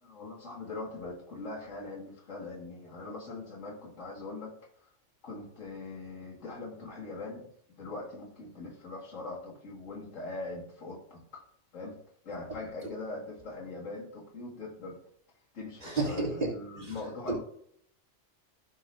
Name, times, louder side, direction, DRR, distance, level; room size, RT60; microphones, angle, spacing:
voice 1, 0.0-4.6 5.2-7.5 7.8-11.4 11.7-12.0 12.2-15.0 15.5-17.4, left 3 dB, 85° left, -2 dB, 2.3 m, -41 dB
voice 2, 15.8-16.5 16.8-16.9 17.3-17.4, right 2 dB, 40° right, -4 dB, 3.0 m, -31 dB
15.0 x 6.3 x 2.6 m, 0.67 s
omnidirectional pair, 1.3 m